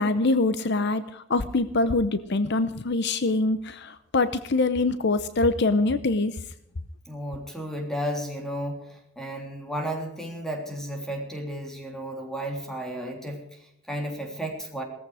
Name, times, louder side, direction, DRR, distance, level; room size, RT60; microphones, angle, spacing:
voice 1, 0.0-6.4, left 2 dB, 55° left, 13 dB, 0.8 m, -24 dB
voice 2, 7.0-14.8, equal, ahead, 2 dB, 3.4 m, -33 dB
18.0 x 14.5 x 5.0 m, 0.78 s
head